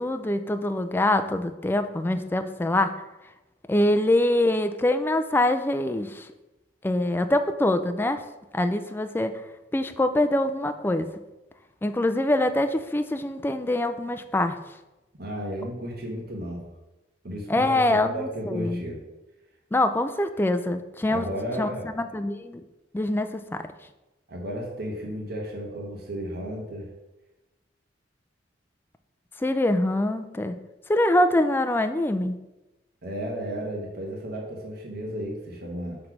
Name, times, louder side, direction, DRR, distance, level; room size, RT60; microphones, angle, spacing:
voice 1, 0.0-2.9 3.7-6.3 6.8-8.2 8.5-9.3 9.7-11.1 11.8-14.6 17.5-18.8 19.7-21.3 21.6-21.7 22.1-22.6 22.9-23.6 29.4-30.5 30.9-32.4, left 1 dB, 10° left, 8 dB, 0.3 m, -24 dB
voice 2, 15.2-16.7 17.2-19.0 21.1-21.9 24.3-26.9 33.0-36.0, equal, 55° right, -2 dB, 1.2 m, -33 dB
6.0 x 3.2 x 5.8 m, 1.0 s
head